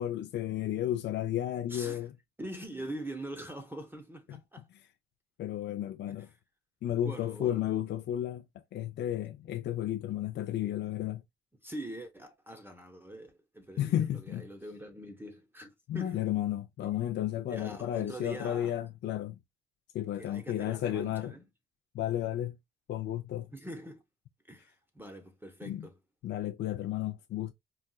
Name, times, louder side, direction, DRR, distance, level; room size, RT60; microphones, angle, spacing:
voice 1, 0.0-2.1 4.3-4.4 5.4-6.3 6.8-8.4 8.7-11.2 13.8-14.5 15.9-19.4 19.9-21.3 21.9-22.6 22.9-23.5 25.6-25.9 26.2-27.5, left 12 dB, 60° left, 0.4 m, -33 dB
voice 2, 1.7-2.1 2.4-4.7 6.1-6.3 7.0-7.7 11.6-16.2 16.8-16.9 17.5-18.8 20.2-21.5 23.5-24.0 24.5-26.0, right 1 dB, 10° right, 0.7 m, -44 dB
4.0 x 2.3 x 2.2 m
cardioid pair, 90°, 20 cm